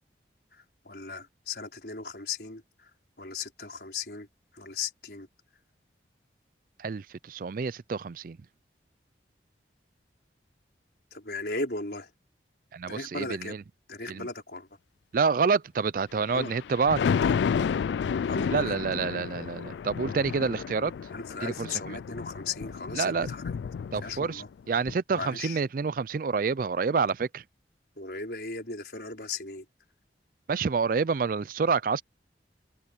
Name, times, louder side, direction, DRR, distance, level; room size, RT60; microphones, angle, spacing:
voice 1, 0.5-2.9 3.2-4.3 4.5-5.3 11.1-12.1 12.9-13.5 13.9-14.7 16.3-16.5 17.0-17.3 18.2-18.8 21.1-23.5 24.0-24.5 25.1-25.6 28.0-29.6, left 4 dB, 60° left, 4.9 m, -37 dB
voice 2, 6.8-8.4 12.7-13.6 14.1-14.3 15.1-17.0 18.5-20.9 21.4-22.0 22.9-23.3 23.9-27.4 30.5-32.0, right 5 dB, 50° right, 0.4 m, -28 dB
Thunder, 16.2-24.5 24.9-25.0, left 6 dB, 75° left, 0.3 m, -31 dB
head